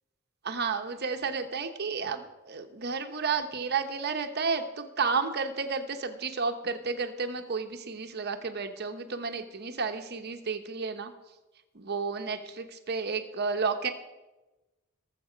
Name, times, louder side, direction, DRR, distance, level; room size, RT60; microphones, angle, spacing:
voice 1, 0.4-11.1 11.7-13.9, right 5 dB, 55° right, 6 dB, 0.9 m, -32 dB
20.5 x 7.4 x 5.1 m, 1.1 s
head